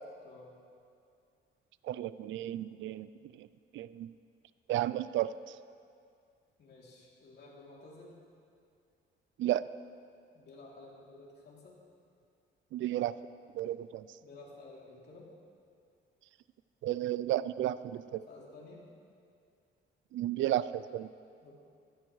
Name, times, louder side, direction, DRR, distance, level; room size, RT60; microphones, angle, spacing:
voice 1, 1.9-3.1 3.4-3.5 3.7-4.1 4.7-5.3 9.4-9.7 12.7-13.1 13.5-14.0 16.8-18.2 20.1-21.1, right 13 dB, 75° right, 16 dB, 0.4 m, -33 dB
voice 2, 6.6-8.1 10.3-11.7 14.2-15.3 18.3-18.9 21.4-21.5, left 2 dB, 60° left, -4 dB, 3.1 m, -52 dB
14.5 x 12.5 x 3.2 m, 2.3 s
cardioid pair, 90°, 20 cm